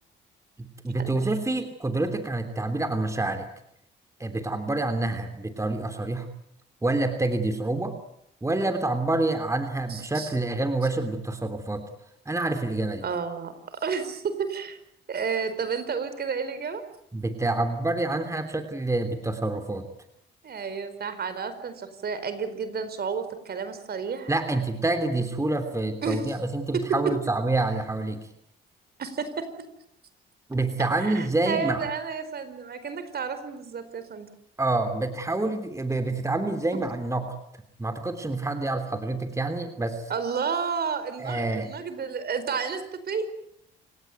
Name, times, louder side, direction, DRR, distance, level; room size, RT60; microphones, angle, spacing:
voice 1, 0.6-3.5 4.2-6.3 6.8-7.9 8.4-11.8 12.2-13.0 17.1-19.9 24.3-28.2 30.5-31.9 34.6-37.3 37.8-40.0 41.2-41.7, right 2 dB, 15° right, 7 dB, 3.1 m, -27 dB
voice 2, 9.9-10.3 13.0-14.8 15.1-16.8 20.4-24.3 26.0-26.3 26.7-26.8 29.0-29.5 31.0-34.3 40.1-43.3, right 6 dB, 55° right, 11 dB, 4.6 m, -31 dB
28.5 x 17.5 x 9.4 m, 0.75 s
cardioid pair, 90°, 20 cm